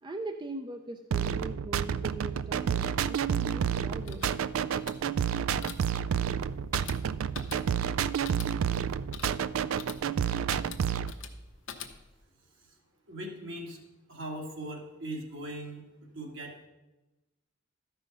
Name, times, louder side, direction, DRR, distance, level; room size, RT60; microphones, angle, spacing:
voice 1, 0.0-4.2, right 2 dB, 20° right, 5 dB, 0.4 m, -40 dB
sound 1, 1.1-11.1, right 8 dB, 85° right, 0.3 m, -30 dB
sound 2, 3.9-12.3, left 7 dB, 65° left, 0.9 m, -46 dB
voice 2, 13.1-13.8 14.1-15.8 16.1-16.7, right 1 dB, 65° right, 0 dB, 1.9 m, -39 dB
13.0 x 5.6 x 5.3 m, 1.1 s
head